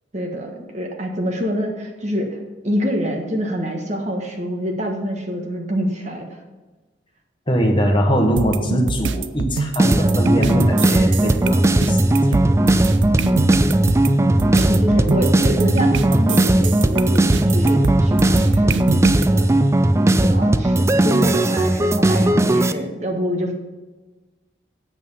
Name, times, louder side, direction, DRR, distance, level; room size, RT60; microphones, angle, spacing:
voice 1, 0.1-2.4 2.6-6.4 13.2-13.6 14.5-19.5 20.1-23.5, equal, 40° right, 2 dB, 1.4 m, -26 dB
voice 2, 7.5-12.5, equal, 25° left, 2 dB, 1.3 m, -22 dB
sound 1, 8.4-19.3, right 4 dB, 80° right, 0.5 m, -25 dB
sound 2, 9.8-22.7, right 1 dB, 15° right, 0.4 m, -17 dB
8.8 x 7.6 x 5.5 m, 1.2 s
head